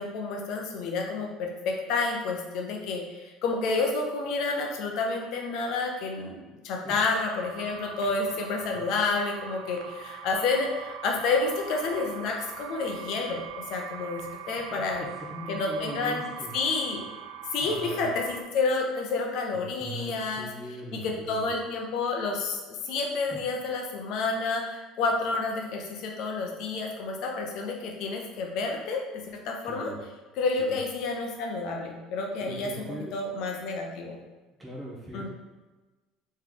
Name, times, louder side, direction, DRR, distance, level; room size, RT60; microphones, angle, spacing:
voice 1, 0.0-15.1 15.5-16.3 16.5-17.0 17.5-20.5 20.9-29.0 29.3-29.9 30.4-34.2 35.1-35.3, left 3 dB, 55° left, 1 dB, 0.6 m, -30 dB
sound 1, 7.1-18.4, right 8 dB, 90° right, 0.3 m, -42 dB
voice 2, 14.7-16.5 17.6-18.0 19.5-21.5 29.6-30.0 30.6-30.8 32.4-33.2 34.6-35.3, right 1 dB, 10° right, -4 dB, 0.8 m, -40 dB
3.7 x 3.1 x 3.8 m, 1.2 s
cardioid pair, 170°, 0 cm